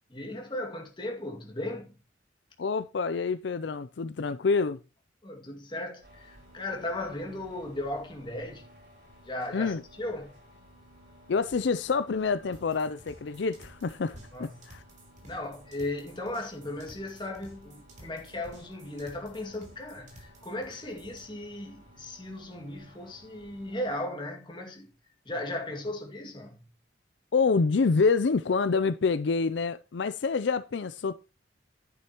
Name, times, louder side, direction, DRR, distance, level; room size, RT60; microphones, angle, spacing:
voice 1, 0.1-1.9 5.2-8.7 9.2-10.3 14.3-14.7 15.2-24.9 25.2-26.6, left 1 dB, 25° left, 2.3 m, -36 dB
voice 2, 2.6-4.8 9.5-9.8 11.3-14.8 27.3-31.1, left 4 dB, 65° left, 0.5 m, -27 dB
sound 1, 6.0-24.0, equal, 60° right, 5.9 m, -55 dB
sound 2, 12.5-21.3, right 1 dB, 40° right, 3.1 m, -54 dB
10.5 x 9.7 x 3.0 m
head